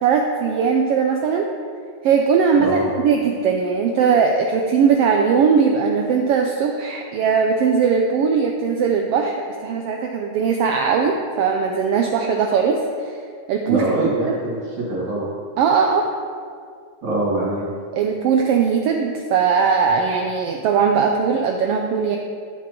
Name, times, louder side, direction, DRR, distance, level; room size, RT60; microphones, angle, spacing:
voice 1, 0.0-1.5 2.0-9.4 9.6-13.2 13.5-14.4 15.6-16.1 17.9-22.2, right 6 dB, 90° right, 2 dB, 1.3 m, -19 dB
voice 2, 13.7-15.3 17.0-17.6, right 2 dB, 75° right, -11 dB, 4.0 m, -23 dB
12.5 x 8.2 x 3.0 m, 2.1 s
omnidirectional pair, 3.3 m